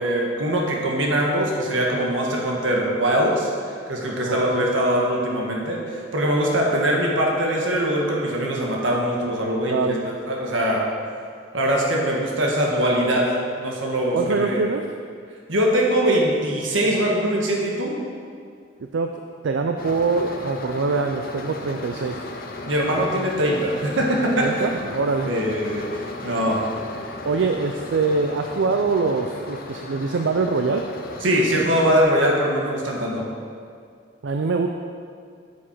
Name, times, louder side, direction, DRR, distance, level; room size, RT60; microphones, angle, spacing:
voice 1, 0.0-10.8 11.5-14.6 15.5-17.9 22.7-24.7 25.3-25.8 26.2-26.6 31.2-33.2, right 1 dB, 85° right, -1 dB, 1.6 m, -22 dB
voice 2, 4.2-4.7 9.7-10.0 14.1-14.8 18.9-19.1 19.4-22.2 24.4-25.3 26.5-26.6 27.3-30.8 34.2-34.7, right 4 dB, 70° right, 5 dB, 0.4 m, -24 dB
sound 1, 19.8-32.0, left 2 dB, 50° left, 0.7 m, -36 dB
8.5 x 7.2 x 4.6 m, 2.3 s
head